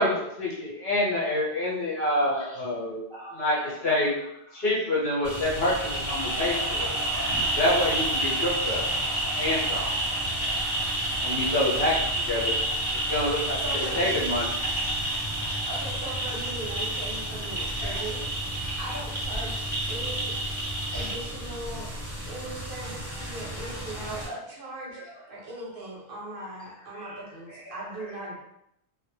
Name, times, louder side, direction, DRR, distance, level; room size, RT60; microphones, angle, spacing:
voice 1, 0.0-3.0 3.3-4.1 4.5-6.9 7.6-8.8 9.3-9.9 11.2-11.9 12.3-12.5 13.1-14.5, left 1 dB, 60° left, -6 dB, 1.0 m, -27 dB
voice 2, 3.1-4.3 4.8-5.2 5.7-6.0 7.1-9.0 15.1-15.9 16.7-16.8 17.8-18.1 18.6-19.0 20.3-20.4 20.8-21.2 22.5-22.6 22.8-22.9 23.2-23.3 23.6-23.7 24.9-25.2 26.4-26.7 27.0-28.4, equal, 40° left, -7 dB, 0.4 m, -45 dB
sound 1, 5.2-24.3, right 1 dB, 15° right, 1.1 m, -30 dB
voice 3, 13.6-14.3 15.7-18.3 18.8-20.4 20.9-21.9 22.3-25.0 25.3-28.4, right 2 dB, 60° right, -4 dB, 0.7 m, -39 dB
2.2 x 2.0 x 3.1 m, 0.79 s
omnidirectional pair, 1.2 m